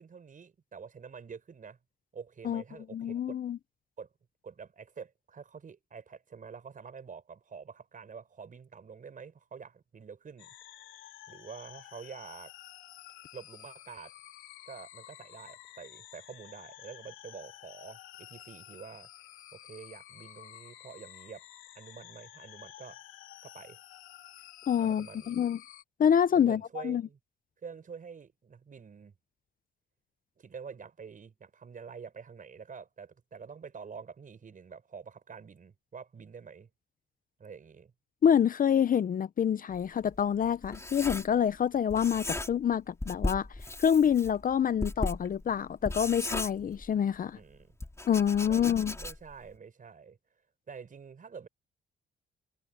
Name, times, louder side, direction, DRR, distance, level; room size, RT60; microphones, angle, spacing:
voice 1, 0.0-1.8 2.1-3.4 4.0-4.1 4.4-10.5 11.3-12.5 13.3-14.1 14.7-19.1 19.5-21.4 21.7-23.0 23.4-23.8 24.8-25.4 26.3-27.2 27.6-29.1 30.4-36.7 37.4-37.9 47.3-47.8 48.4-50.2 50.7-51.5, right 6 dB, 40° right, 5.8 m, -47 dB
voice 2, 2.9-3.6 24.7-25.6 26.0-27.0 38.2-43.5 43.8-47.4 48.1-48.9, left 8 dB, 45° left, 0.7 m, -27 dB
sound 1, 10.4-25.8, left 13 dB, 90° left, 2.8 m, -51 dB
Writing, 39.7-41.6 41.9-42.7 43.0-47.2 47.8-49.4, left 2 dB, 15° left, 3.8 m, -37 dB
cardioid pair, 90°, 20 cm